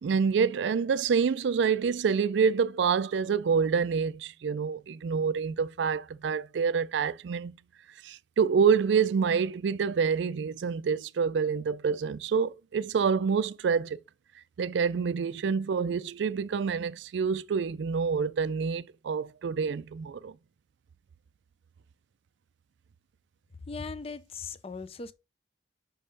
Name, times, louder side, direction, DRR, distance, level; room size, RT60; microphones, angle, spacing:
voice 1, 0.0-7.5 8.0-14.0 14.6-20.3, right 6 dB, 75° right, 0.4 m, -27 dB
voice 2, 23.7-25.1, left 4 dB, 35° left, 0.5 m, -38 dB
5.5 x 5.4 x 3.8 m
head